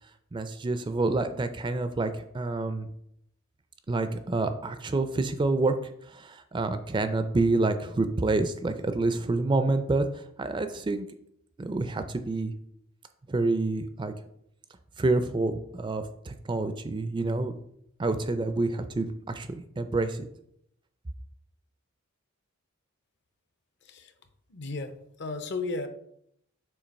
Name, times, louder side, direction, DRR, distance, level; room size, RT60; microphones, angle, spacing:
voice 1, 0.3-2.9 3.9-10.1 10.4-11.0 11.6-12.5 13.3-14.1 15.0-17.5 18.0-20.3, right 2 dB, 20° right, 10 dB, 0.4 m, -28 dB
voice 2, 23.8-24.1 24.5-25.9, left 3 dB, 55° left, 8 dB, 0.7 m, -34 dB
7.0 x 2.9 x 5.2 m, 0.73 s
head